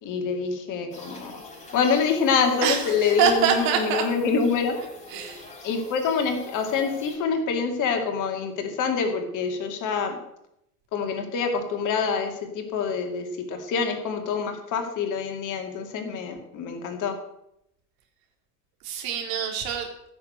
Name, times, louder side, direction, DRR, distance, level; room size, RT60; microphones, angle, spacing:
voice 1, 0.0-1.3 1.7-4.8 5.6-10.2 10.9-17.1, left 5 dB, 40° left, 5 dB, 2.6 m, -26 dB
sound 1, 0.9-7.2, left 3 dB, 15° left, 5.8 m, -43 dB
voice 2, 2.6-4.1 5.1-5.5 18.8-19.9, right 8 dB, 45° right, 2 dB, 3.5 m, -25 dB
16.0 x 6.9 x 8.0 m, 0.79 s
figure-of-eight pair, 85°, 48 cm